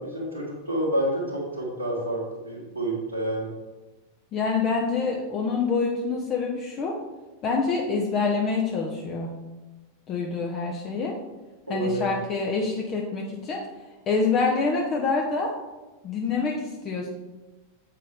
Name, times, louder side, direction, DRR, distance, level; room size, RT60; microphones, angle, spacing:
voice 1, 0.0-3.5 11.7-12.1, right 1 dB, 85° right, -7 dB, 1.5 m, -28 dB
voice 2, 4.3-7.0 7.4-9.3 10.1-11.1 11.7-13.6 14.1-15.5 16.0-17.1, left 4 dB, 30° left, 0 dB, 0.9 m, -26 dB
7.6 x 5.9 x 3.6 m, 1.1 s
figure-of-eight pair, 90°, 0 cm